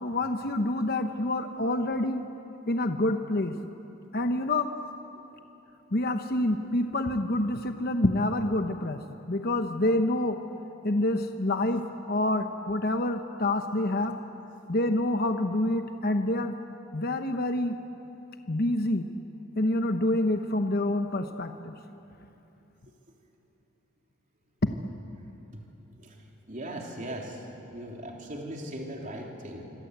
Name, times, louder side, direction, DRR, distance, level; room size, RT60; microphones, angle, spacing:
voice 1, 0.0-2.2 2.7-3.6 4.1-4.7 5.9-9.0 9.3-10.4 10.8-11.8 12.1-14.2 14.7-16.6 16.9-17.8 18.5-19.1 19.6-21.7 24.6-24.7, left 1 dB, 45° left, 6 dB, 1.0 m, -27 dB
voice 2, 26.5-27.4 27.7-29.6, right 1 dB, 35° right, 0 dB, 3.4 m, -38 dB
26.5 x 25.5 x 8.2 m, 2.9 s
head